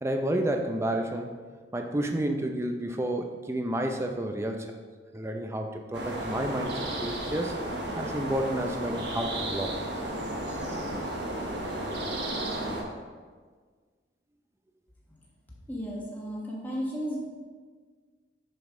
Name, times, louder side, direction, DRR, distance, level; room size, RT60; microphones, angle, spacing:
voice 1, 0.0-1.3 1.7-4.7 5.1-7.6 7.9-9.7, right 1 dB, 15° right, 4 dB, 0.5 m, -30 dB
sound 1, 5.9-12.8, right 1 dB, 75° right, 1.1 m, -33 dB
voice 2, 15.7-17.2, equal, 10° left, -4 dB, 1.4 m, -34 dB
6.6 x 6.2 x 3.7 m, 1.5 s
head